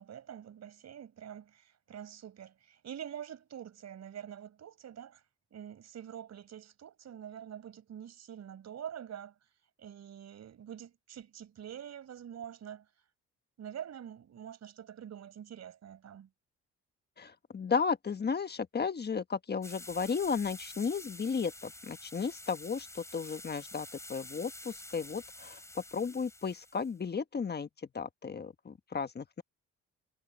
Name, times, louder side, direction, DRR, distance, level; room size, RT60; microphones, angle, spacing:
voice 1, 0.0-5.2 5.5-9.3 9.8-12.9 13.6-16.3, right 9 dB, 60° right, 5.4 m, -46 dB
voice 2, 17.2-27.7 27.9-29.4, left 5 dB, 35° left, 1.3 m, -34 dB
sound 1, 19.6-26.9, left 1 dB, 10° left, 4.6 m, -49 dB
cardioid pair, 90°, 30 cm